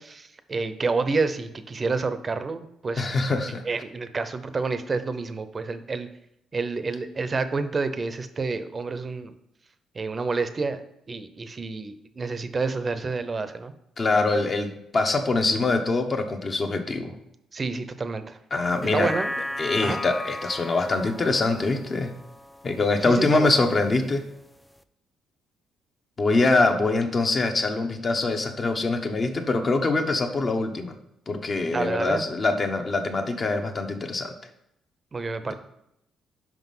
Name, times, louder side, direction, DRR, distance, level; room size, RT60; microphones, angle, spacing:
voice 1, 0.0-3.1 3.7-6.1 6.5-9.3 9.9-10.8 11.1-13.7 17.5-18.4 18.9-19.3 19.8-20.0 23.0-23.5 31.7-32.2 35.1-35.5, right 4 dB, 35° right, 11 dB, 0.6 m, -29 dB
voice 2, 3.0-3.6 14.0-17.1 18.5-19.1 19.6-22.1 22.6-24.3 26.2-30.9 31.3-34.3 35.5-35.6, left 3 dB, 40° left, 5 dB, 1.0 m, -24 dB
sound 1, 18.7-23.3 23.7-23.8, left 1 dB, 5° left, 0.4 m, -35 dB
6.0 x 5.1 x 5.5 m, 0.80 s
cardioid pair, 90°, 0 cm